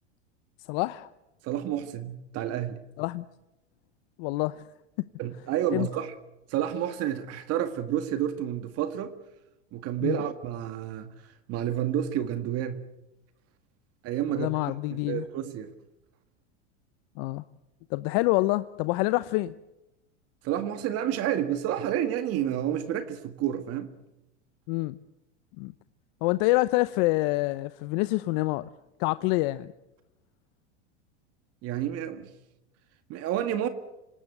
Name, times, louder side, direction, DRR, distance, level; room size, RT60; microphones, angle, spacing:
voice 1, 0.7-1.1 3.0-3.3 4.2-4.6 5.0-5.1 5.7-5.9 10.0-10.2 14.3-15.3 17.2-17.4 17.9-19.5 24.7-25.0 25.6-25.7 26.2-28.7 29.0-29.7, left 20 dB, 55° left, 0.8 m, -26 dB
voice 2, 1.4-2.8 5.2-6.1 6.5-9.1 9.7-11.1 11.5-12.8 14.0-14.5 15.1-15.7 20.4-23.9 31.6-32.3 33.1-33.7, right 11 dB, 45° right, 1.8 m, -29 dB
26.5 x 18.0 x 8.1 m
supercardioid pair, 120°, 34 cm